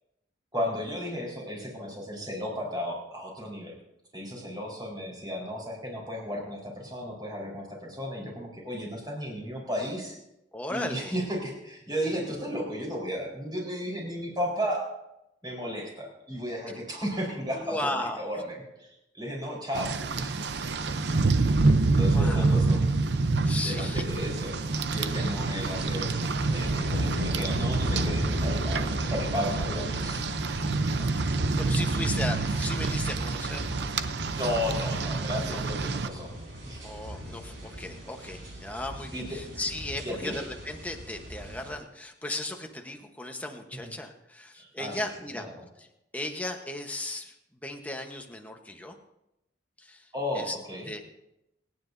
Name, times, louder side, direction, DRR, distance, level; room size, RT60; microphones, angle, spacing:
voice 1, 0.5-3.7 4.1-10.2 10.7-14.9 15.4-20.4 22.0-22.8 23.6-26.1 26.5-30.2 34.3-36.3 36.7-36.8 39.1-39.4 40.0-40.4 43.7-43.9 44.6-45.0 45.3-45.4 50.1-50.9, equal, 25° right, -2 dB, 4.2 m, -34 dB
voice 2, 10.5-11.2 17.5-18.3 22.1-22.6 23.4-24.0 31.1-33.8 35.4-35.6 36.8-45.5 45.8-45.9 46.1-47.3 47.6-49.0 49.8-50.6 50.9-51.1, left 1 dB, 10° left, 3 dB, 1.0 m, -36 dB
Rain, 19.7-36.1, right 3 dB, 65° right, 0.6 m, -27 dB
sound 1, 24.0-41.7, equal, 90° right, 4.6 m, -36 dB
27.5 x 9.7 x 2.7 m, 0.89 s
head